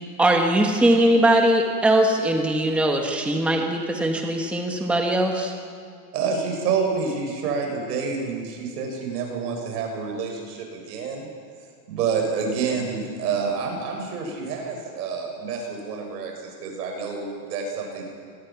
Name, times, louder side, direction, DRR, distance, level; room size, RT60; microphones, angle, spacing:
voice 1, 0.2-5.5, right 1 dB, 5° right, 2 dB, 1.3 m, -20 dB
voice 2, 6.1-11.3 11.9-18.0, right 5 dB, 80° right, 1 dB, 7.0 m, -28 dB
26.5 x 20.0 x 5.9 m, 2.1 s
supercardioid pair, 165°, 47 cm